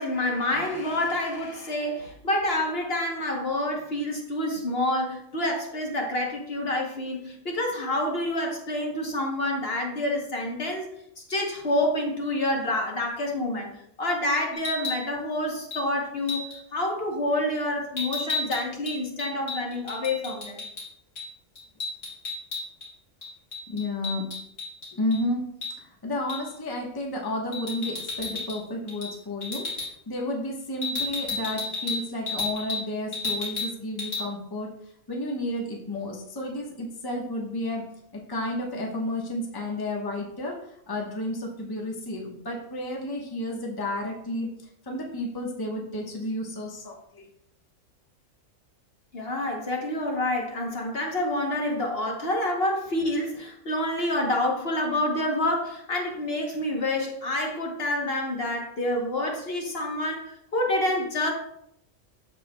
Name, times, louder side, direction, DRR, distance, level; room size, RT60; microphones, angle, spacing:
voice 1, 0.0-10.9 11.2-20.6 49.1-61.3, left 1 dB, 50° left, 0 dB, 1.2 m, -28 dB
sound 1, 14.5-15.0 15.7-15.9 16.3-16.6 18.0-20.9 21.1-21.3 21.5-22.9 23.2-25.2 25.6-25.7 26.3-26.5 27.5-28.6 28.9-29.1 29.4-29.9 30.8-32.8 33.1-33.7 34.0-34.2, left 3 dB, 65° left, 2.2 m, -32 dB
voice 2, 23.7-24.2 24.9-25.4 25.8-29.7 30.1-34.7 35.1-37.9 38.1-40.6 40.9-44.5 44.8-47.3, left 1 dB, 20° left, -1 dB, 1.0 m, -31 dB
13.0 x 4.4 x 2.2 m, 0.74 s
omnidirectional pair, 1.4 m